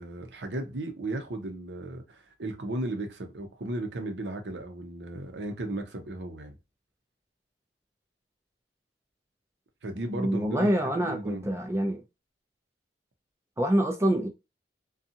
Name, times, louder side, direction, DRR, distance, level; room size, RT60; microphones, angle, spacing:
voice 1, 0.0-6.6 9.8-11.5, right 1 dB, 80° right, 0.7 m, -35 dB
voice 2, 10.1-12.0 13.6-14.3, right 1 dB, 15° right, 0.4 m, -26 dB
2.6 x 2.3 x 2.7 m
head